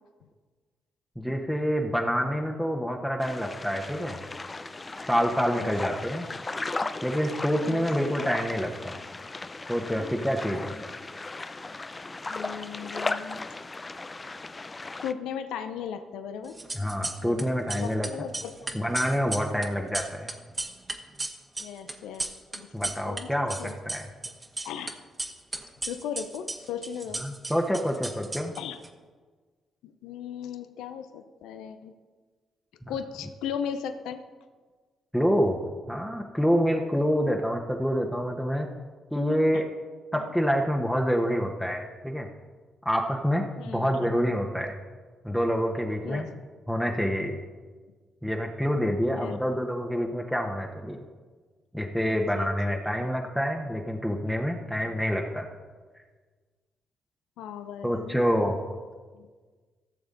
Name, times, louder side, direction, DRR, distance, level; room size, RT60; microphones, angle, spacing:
voice 1, 1.2-4.2 5.0-6.3 7.0-9.0 9.7-10.8 16.7-18.1 18.7-20.3 22.7-23.6 23.8-24.1 27.2-28.5 32.8-32.9 35.1-35.6 35.9-38.7 39.1-39.6 40.1-42.3 42.8-44.7 45.2-46.3 46.7-47.4 48.2-51.0 51.7-55.5 57.8-58.6, equal, ahead, 1 dB, 1.3 m, -27 dB
sound 1, 3.2-15.1, left 3 dB, 30° left, 0.6 m, -36 dB
voice 2, 12.3-13.4 15.0-16.6 17.2-17.3 17.7-18.8 21.6-22.3 22.5-22.7 23.1-23.7 24.6-25.0 25.9-27.2 28.6-28.8 29.8-31.9 32.9-34.2 39.5-39.6 40.1-40.2 43.6-44.0 46.0-46.3 49.1-49.4 52.1-53.1 57.4-58.2 59.1-59.3, left 8 dB, 80° left, 9 dB, 0.5 m, -37 dB
sound 2, 16.5-17.4 17.7-23.2 23.5-24.9 25.2-28.9, right 2 dB, 30° right, 1.4 m, -35 dB
15.5 x 6.9 x 4.0 m, 1.4 s
hypercardioid pair, 50°, 0 cm